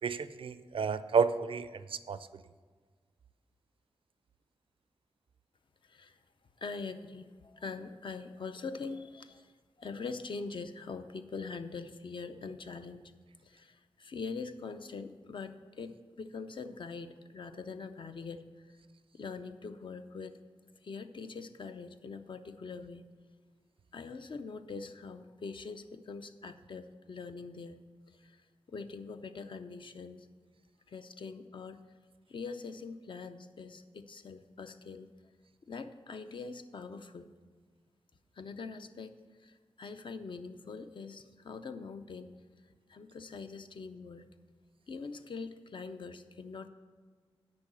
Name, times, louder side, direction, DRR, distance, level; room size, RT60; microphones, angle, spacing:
voice 1, 0.0-2.3, right 5 dB, 65° right, 13 dB, 0.4 m, -31 dB
voice 2, 6.6-9.5 9.8-13.0 13.4-18.4 19.1-20.3 20.8-23.0 23.9-27.8 28.2-28.4 28.7-30.3 30.9-31.8 32.3-35.1 35.7-37.3 38.4-39.1 39.4-42.3 42.9-44.3 44.9-46.7, left 4 dB, 55° left, 9 dB, 0.5 m, -43 dB
8.5 x 5.4 x 7.6 m, 1.5 s
wide cardioid pair, 135°, 10 cm